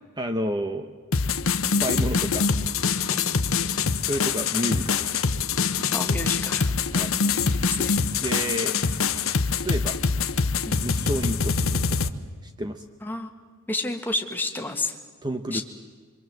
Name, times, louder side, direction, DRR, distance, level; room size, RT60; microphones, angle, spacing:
voice 1, 0.2-0.9 1.6-2.5 4.0-5.1 6.9-7.1 7.8-7.9 8.2-8.8 9.5-10.0 10.7-12.1 12.4-12.9 15.2-15.6, right 1 dB, 20° right, 6 dB, 0.9 m, -30 dB
sound 1, 1.1-12.1, left 5 dB, 65° left, 1.0 m, -24 dB
voice 2, 3.1-3.5 5.9-6.7 7.5-8.0 10.6-10.9 13.0-13.3 13.7-15.0 15.5-15.6, left 2 dB, 10° left, 3 dB, 1.9 m, -31 dB
26.0 x 25.0 x 7.8 m, 1.5 s
head